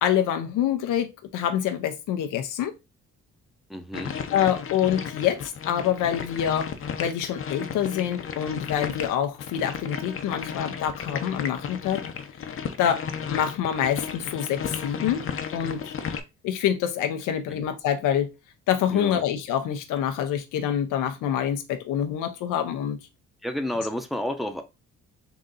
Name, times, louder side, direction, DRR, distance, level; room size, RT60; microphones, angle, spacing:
voice 1, 0.0-2.7 4.3-6.7 7.0-12.0 12.8-15.3 15.5-15.9 16.4-18.3 18.7-23.0, left 9 dB, 90° left, 0.8 m, -26 dB
voice 2, 3.7-4.1 17.5-17.6 18.9-19.2 23.4-24.6, left 1 dB, ahead, 0.7 m, -31 dB
sound 1, 3.9-16.2, left 7 dB, 45° left, 0.7 m, -34 dB
3.9 x 2.7 x 3.9 m
cardioid pair, 90°, 30 cm